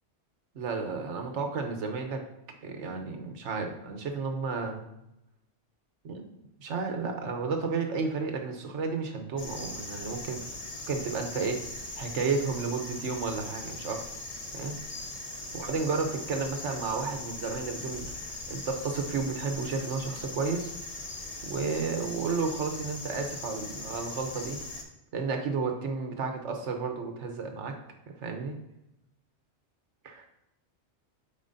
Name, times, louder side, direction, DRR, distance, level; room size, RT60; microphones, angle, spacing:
voice 1, 0.5-2.2 2.6-4.8 6.0-6.3 6.6-11.6 11.9-14.0 14.5-14.8 15.3-20.8 21.4-24.6 25.1-27.8 28.1-28.5 30.0-30.3, right 4 dB, 80° right, 4 dB, 1.2 m, -32 dB
sound 1, 9.4-24.8, left 2 dB, 35° left, 1.0 m, -40 dB
8.6 x 4.9 x 2.7 m, 0.87 s
omnidirectional pair, 1.2 m